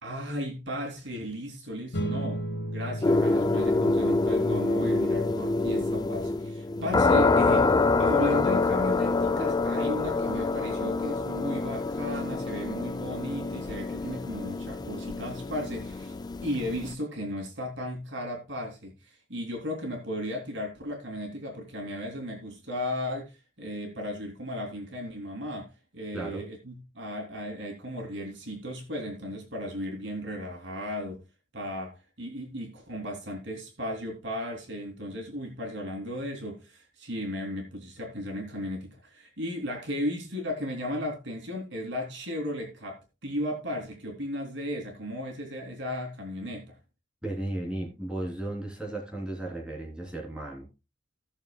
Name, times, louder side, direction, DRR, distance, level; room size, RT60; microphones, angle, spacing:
voice 1, 0.0-2.4 2.7-7.7 8.0-16.1 16.4-31.2 31.5-46.7, left 1 dB, 65° right, 3.1 m, -35 dB
sound 1, 1.9-12.7, equal, 60° left, 1.4 m, -39 dB
sound 2, 3.0-16.9, left 3 dB, 20° left, 0.4 m, -26 dB
voice 2, 47.2-50.7, right 1 dB, 5° right, 3.6 m, -35 dB
17.5 x 6.9 x 2.3 m
head